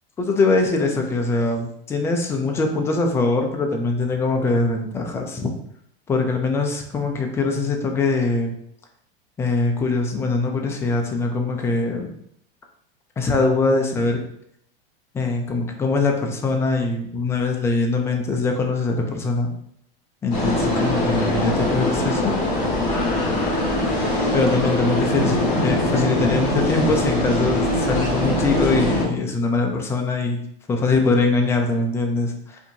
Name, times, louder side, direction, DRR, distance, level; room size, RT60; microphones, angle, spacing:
voice 1, 0.2-5.5 6.1-8.5 9.4-12.1 13.2-14.2 15.1-19.5 20.2-22.3 24.3-25.4 25.6-30.4 30.7-32.6, left 3 dB, 10° left, 2 dB, 0.3 m, -22 dB
sound 1, 20.3-29.0, left 1 dB, 25° left, 1.4 m, -22 dB
4.4 x 2.6 x 2.7 m, 0.70 s
supercardioid pair, 140°, 30 cm